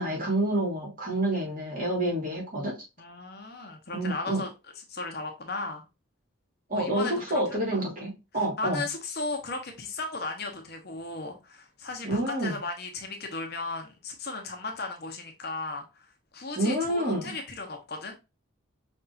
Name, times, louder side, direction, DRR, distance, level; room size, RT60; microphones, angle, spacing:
voice 1, 0.0-2.7 3.9-4.4 6.7-8.8 12.0-12.6 16.6-17.3, right 1 dB, 40° right, -3 dB, 2.4 m, -28 dB
voice 2, 3.0-4.5 4.9-5.8 6.7-7.4 7.7-7.8 8.3-16.1 16.3-18.1, left 3 dB, 50° left, 3 dB, 1.0 m, -36 dB
5.6 x 3.5 x 2.6 m, 0.26 s
head